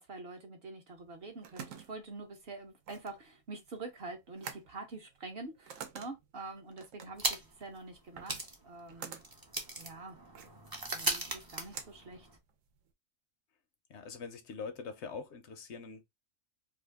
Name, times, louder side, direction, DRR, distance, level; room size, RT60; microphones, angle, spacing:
voice 1, 0.0-9.2 9.8-10.2 10.9-12.3, right 3 dB, 55° right, 0.9 m, -46 dB
sound 1, 1.0-12.9, right 7 dB, 85° right, 1.0 m, -50 dB
sound 2, 7.2-7.7 8.0-8.1 8.3-12.4, right 2 dB, 30° right, 0.4 m, -38 dB
voice 2, 13.9-16.0, left 5 dB, 70° left, 0.8 m, -43 dB
2.7 x 2.4 x 3.4 m
omnidirectional pair, 1.4 m